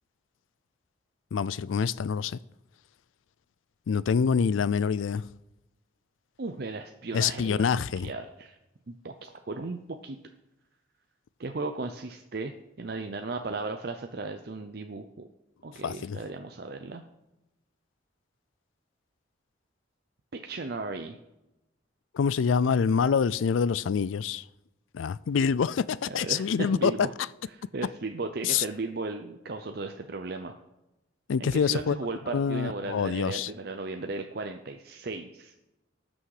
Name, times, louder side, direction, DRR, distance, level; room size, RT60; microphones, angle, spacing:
voice 1, 1.3-2.4 3.9-5.2 7.1-8.1 15.8-16.2 22.1-24.4 24.9-26.9 28.4-28.6 31.3-31.9 32.3-33.5, left 6 dB, 90° left, 0.4 m, -26 dB
voice 2, 6.4-8.6 8.9-10.2 11.4-15.0 15.6-17.0 20.4-21.2 26.0-27.1 27.5-30.5 31.4-35.7, right 3 dB, 55° right, 0.6 m, -36 dB
18.5 x 6.3 x 4.9 m
head